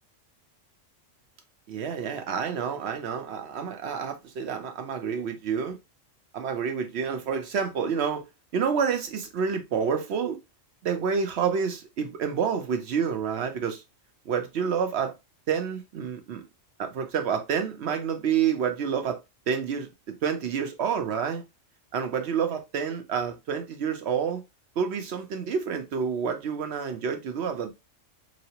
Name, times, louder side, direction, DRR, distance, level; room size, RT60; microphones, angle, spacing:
voice 1, 1.7-5.8 6.3-8.2 8.5-10.4 10.8-13.8 14.3-15.1 15.5-16.4 16.8-19.2 19.5-21.4 21.9-24.4 24.8-27.7, right 7 dB, 60° right, 0.9 m, -28 dB
4.1 x 2.1 x 2.8 m
omnidirectional pair, 1.4 m